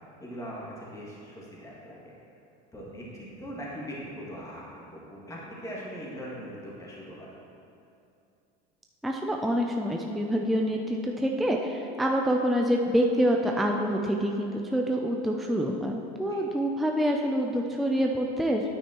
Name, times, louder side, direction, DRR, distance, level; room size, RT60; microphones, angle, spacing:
voice 1, 0.2-2.1 2.7-7.3 16.3-16.4, equal, 15° left, -6 dB, 2.2 m, -41 dB
voice 2, 9.0-18.6, equal, ahead, 1 dB, 0.4 m, -26 dB
9.5 x 8.9 x 3.0 m, 2.6 s
supercardioid pair, 115°, 21 cm